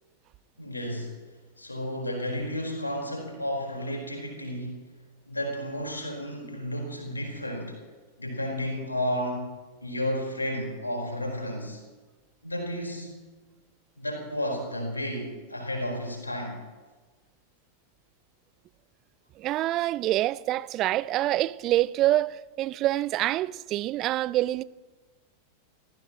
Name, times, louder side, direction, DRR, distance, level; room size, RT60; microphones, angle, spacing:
voice 1, 0.6-1.2 1.6-4.8 5.3-7.8 8.2-9.5 9.8-11.8 12.4-13.1 14.0-16.6, equal, 80° left, 4.5 m, -32 dB
voice 2, 19.4-24.6, right 15 dB, 35° right, 0.4 m, -26 dB
30.0 x 15.0 x 3.1 m
figure-of-eight pair, 90°, 0 cm